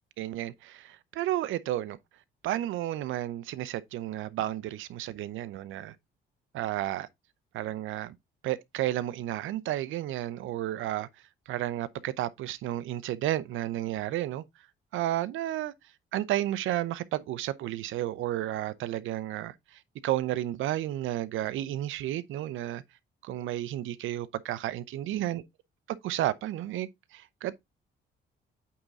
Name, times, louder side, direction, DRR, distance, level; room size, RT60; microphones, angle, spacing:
voice 1, 0.2-2.0 2.4-5.9 6.5-7.1 7.5-8.1 8.4-11.1 11.5-14.4 14.9-15.7 16.1-22.8 23.2-25.4 25.9-27.5, right 13 dB, 85° right, 0.7 m, -32 dB
8.7 x 3.7 x 4.0 m
cardioid pair, 90°, 20 cm